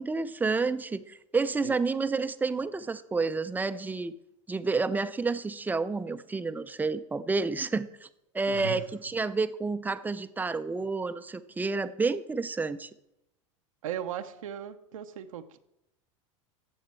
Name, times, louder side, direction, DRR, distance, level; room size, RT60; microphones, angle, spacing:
voice 1, 0.0-4.1 4.5-8.1 8.3-12.9, right 4 dB, 10° right, 13 dB, 0.5 m, -30 dB
voice 2, 8.5-8.8 13.8-15.6, right 10 dB, 90° right, 7 dB, 0.8 m, -37 dB
15.0 x 7.3 x 4.5 m, 0.85 s
supercardioid pair, 110°, 17 cm